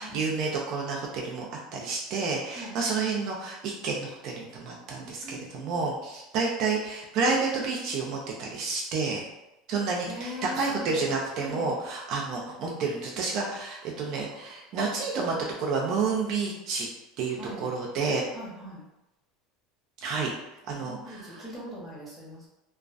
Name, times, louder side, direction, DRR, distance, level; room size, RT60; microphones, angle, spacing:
voice 1, 0.0-1.5 1.7-9.2 9.7-16.9 17.2-18.2 20.0-20.3 20.7-21.5, right 4 dB, 55° right, -1 dB, 0.4 m, -30 dB
voice 2, 4.9-5.9 10.1-11.1 11.4-11.7 17.4-17.7 18.3-18.8 20.8-22.5, equal, 5° left, -7 dB, 1.0 m, -41 dB
2.3 x 2.2 x 2.4 m, 0.94 s
supercardioid pair, 130°, 0 cm